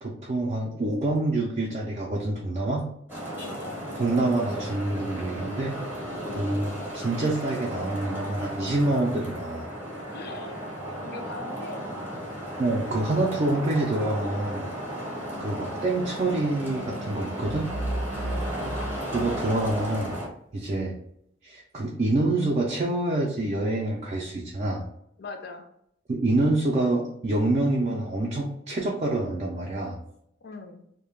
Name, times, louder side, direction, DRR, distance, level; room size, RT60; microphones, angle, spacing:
voice 1, 0.0-2.9 4.0-5.8 6.3-9.7 12.6-14.7 15.4-17.7 19.1-20.2 20.5-20.9 21.4-24.8 26.1-30.0, right 2 dB, 35° right, -2 dB, 0.4 m, -26 dB
Traffic noise roadway noise, 3.1-20.3, equal, 10° right, 0.7 m, -35 dB
voice 2, 3.4-4.1 6.2-6.5 10.1-10.7 11.0-11.9 15.3-15.5 18.1-18.6 25.2-25.7 30.4-30.9, left 3 dB, 55° left, 5 dB, 0.4 m, -41 dB
sound 1, 17.4-20.3, right 1 dB, 90° right, 0.5 m, -34 dB
2.3 x 2.1 x 3.1 m, 0.75 s
head